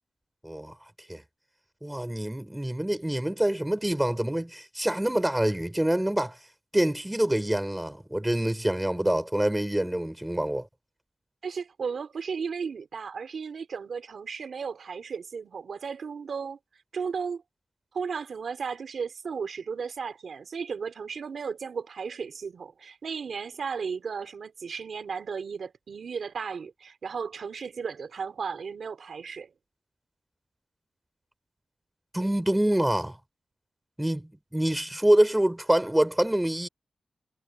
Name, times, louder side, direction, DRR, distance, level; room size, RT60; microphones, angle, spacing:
voice 1, 0.4-0.7 1.1-1.2 1.8-6.4 6.7-10.7 32.1-33.2 34.0-36.7, right 1 dB, 10° right, 4.5 m, -26 dB
voice 2, 11.4-16.6 16.9-17.4 17.9-29.5, right 6 dB, 75° right, 3.3 m, -35 dB
wide cardioid pair, 165°, 0 cm